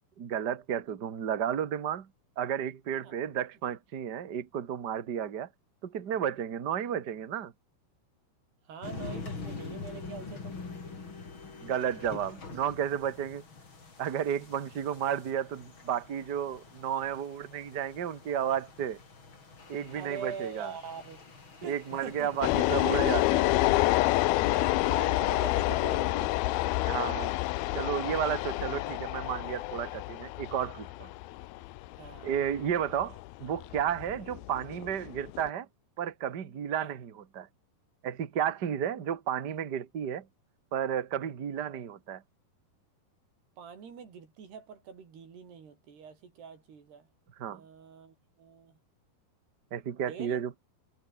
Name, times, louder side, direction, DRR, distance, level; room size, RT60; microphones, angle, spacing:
voice 1, 0.2-2.1 2.4-5.5 5.8-7.5 11.6-13.4 14.0-19.0 19.7-20.7 21.6-23.5 26.8-27.3 27.7-31.1 32.2-35.7 36.0-37.5 38.0-40.3 40.7-42.2 47.4-47.6 49.7-50.5, right 9 dB, 60° right, 1.0 m, -32 dB
voice 2, 8.7-10.5 19.9-21.2 21.6-22.3 24.5-26.6 32.0-32.3 36.8-37.0 43.6-47.1 47.5-48.8 50.1-50.4, right 6 dB, 75° right, 6.6 m, -44 dB
sound 1, 8.8-23.3, left 4 dB, 30° left, 4.3 m, -45 dB
sound 2, 22.4-35.5, left 18 dB, 80° left, 2.5 m, -28 dB
omnidirectional pair, 4.7 m